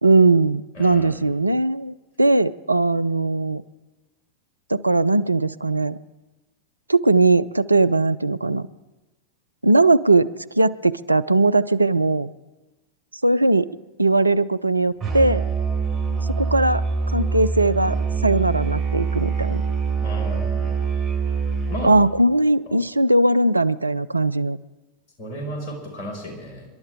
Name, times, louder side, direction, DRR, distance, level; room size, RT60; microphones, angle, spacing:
voice 1, 0.0-3.6 4.7-6.0 6.9-8.7 9.6-10.3 10.6-12.3 13.2-13.7 14.0-15.4 16.4-16.8 17.1-18.0 18.2-19.6 21.8-24.6, right 2 dB, 85° right, 14 dB, 0.4 m, -19 dB
voice 2, 0.7-1.2 20.0-20.8 21.7-21.9 25.2-26.7, equal, 45° left, 1 dB, 5.5 m, -33 dB
Musical instrument, 15.0-22.0, right 5 dB, 35° right, 6.2 m, -24 dB
29.0 x 11.5 x 3.7 m, 1.1 s
figure-of-eight pair, 90°, 0 cm